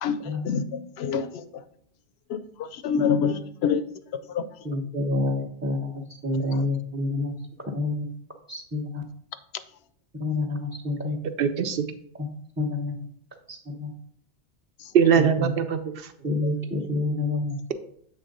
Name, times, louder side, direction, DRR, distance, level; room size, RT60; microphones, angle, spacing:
voice 1, 0.0-1.6 2.3-3.8 4.3-4.4 6.5-6.6 14.8-14.9, left 7 dB, 70° left, 12 dB, 0.8 m, -27 dB
voice 2, 4.6-5.9 6.2-7.3 7.7-8.1 8.5-9.0 10.2-11.2 12.2-12.3 12.6-12.9 13.5-13.9 15.2-15.3 16.2-17.7, left 2 dB, 10° right, -1 dB, 0.6 m, -28 dB
voice 3, 11.4-11.8 14.9-16.1, right 7 dB, 60° right, 9 dB, 0.7 m, -21 dB
7.7 x 3.4 x 5.1 m, 0.64 s
omnidirectional pair, 1.2 m